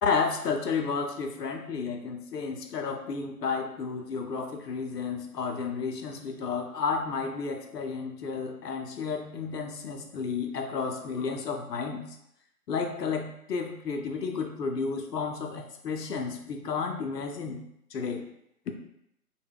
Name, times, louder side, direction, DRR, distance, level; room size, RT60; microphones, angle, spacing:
voice 1, 0.0-12.1 12.7-17.6 17.9-18.3 18.7-18.8, left 5 dB, 85° left, 4 dB, 0.6 m, -32 dB
2.2 x 2.1 x 3.4 m, 0.77 s
figure-of-eight pair, 150°, 47 cm